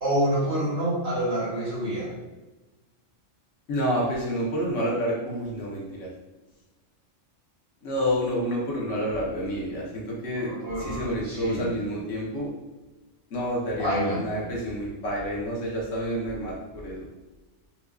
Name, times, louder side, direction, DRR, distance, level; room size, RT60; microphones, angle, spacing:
voice 1, 0.0-2.1 10.3-11.7 13.8-14.2, right 1 dB, 55° right, -6 dB, 1.4 m, -27 dB
voice 2, 3.7-6.1 7.8-10.5 10.8-12.5 13.3-17.1, equal, 75° left, -4 dB, 1.2 m, -29 dB
4.5 x 2.4 x 2.3 m, 1.1 s
omnidirectional pair, 1.3 m